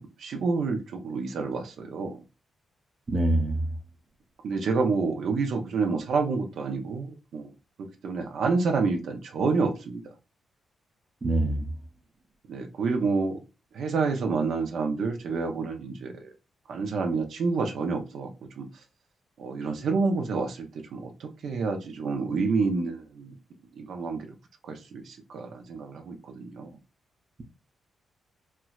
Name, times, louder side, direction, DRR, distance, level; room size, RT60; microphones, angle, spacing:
voice 1, 0.0-2.2 4.4-7.5 7.8-10.0 12.5-13.4 13.7-16.3 16.7-18.3 18.6-18.7 19.4-23.3 23.8-24.3 24.6-26.8, right 4 dB, 75° right, 0.6 m, -28 dB
voice 2, 3.1-3.6 11.2-11.7, right 1 dB, 35° right, 0.6 m, -24 dB
4.4 x 2.0 x 2.3 m
cardioid pair, 95°, 0 cm